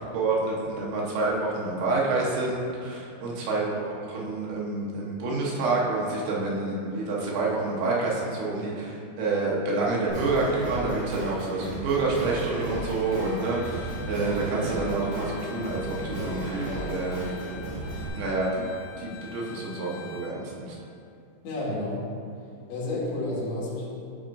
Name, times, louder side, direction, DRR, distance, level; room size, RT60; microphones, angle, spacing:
voice 1, 0.1-17.2 18.1-18.7 19.0-20.8, right 3 dB, 75° right, -4 dB, 3.1 m, -28 dB
Singing, 10.1-18.1, right 2 dB, 50° right, 2.6 m, -34 dB
Bowed string instrument, 12.3-20.4, left 8 dB, 85° left, 3.3 m, -46 dB
voice 2, 21.4-22.1 22.7-23.9, left 2 dB, 70° left, -9 dB, 3.9 m, -30 dB
13.0 x 4.9 x 2.6 m, 2.5 s
omnidirectional pair, 5.5 m